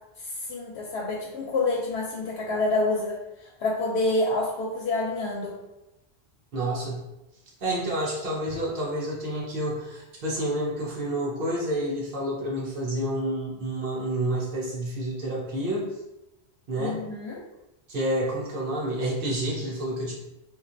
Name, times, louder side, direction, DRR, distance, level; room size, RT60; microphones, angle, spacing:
voice 1, 0.2-5.5 16.8-17.4, left 2 dB, 75° left, -4 dB, 0.8 m, -28 dB
voice 2, 6.5-7.0 7.6-15.9 16.7-17.0 17.9-20.1, right 1 dB, 55° right, -4 dB, 0.9 m, -29 dB
3.0 x 2.4 x 2.5 m, 0.93 s
omnidirectional pair, 1.1 m